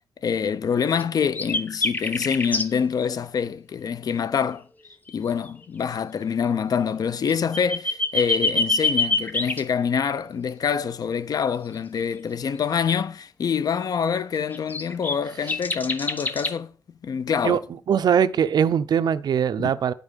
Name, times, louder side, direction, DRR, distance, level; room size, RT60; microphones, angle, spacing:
voice 1, 0.2-4.7 5.1-16.7 17.0-17.6 19.6-19.7, left 7 dB, 65° left, 0.5 m, -26 dB
sound 1, 1.0-1.1 1.3-2.7 4.9-5.1 5.5-5.6 7.3-9.6 14.5-16.5, left 3 dB, 25° left, 0.9 m, -25 dB
voice 2, 17.9-19.9, right 8 dB, 85° right, 0.5 m, -21 dB
9.7 x 5.3 x 6.3 m
wide cardioid pair, 125°, 7 cm